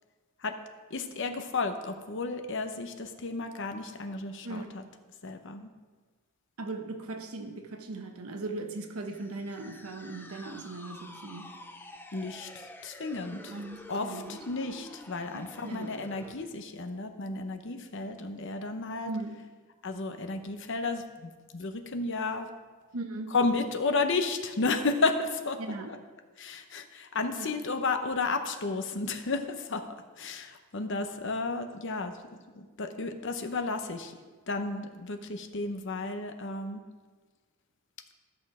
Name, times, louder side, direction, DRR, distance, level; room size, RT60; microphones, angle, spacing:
voice 1, 0.9-4.8 5.2-5.7 12.1-13.5 13.9-19.1 19.8-22.5 23.3-25.6 26.4-29.8 30.2-32.1 32.5-34.1 34.5-36.8, left 3 dB, 55° left, 7 dB, 0.8 m, -32 dB
voice 2, 4.4-4.8 6.6-11.5 13.3-14.4 15.3-16.0 19.0-19.3 22.9-23.3 25.6-25.9 27.4-27.5, right 2 dB, 80° right, 5 dB, 1.1 m, -38 dB
sound 1, 9.0-16.4, left 1 dB, 10° left, 0.5 m, -48 dB
13.5 x 6.2 x 4.9 m, 1.4 s
head